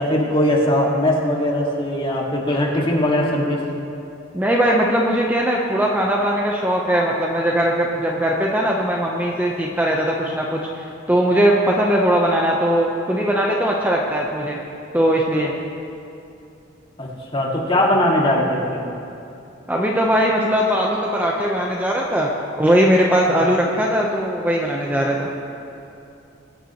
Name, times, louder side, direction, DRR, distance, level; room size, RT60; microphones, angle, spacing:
voice 1, 0.0-3.6 17.0-19.0, left 1 dB, 30° left, -3 dB, 2.1 m, -20 dB
voice 2, 4.3-14.6 14.9-15.5 19.7-22.3 22.6-25.3, equal, 10° right, -2 dB, 0.9 m, -19 dB
22.0 x 10.0 x 3.1 m, 2.7 s
head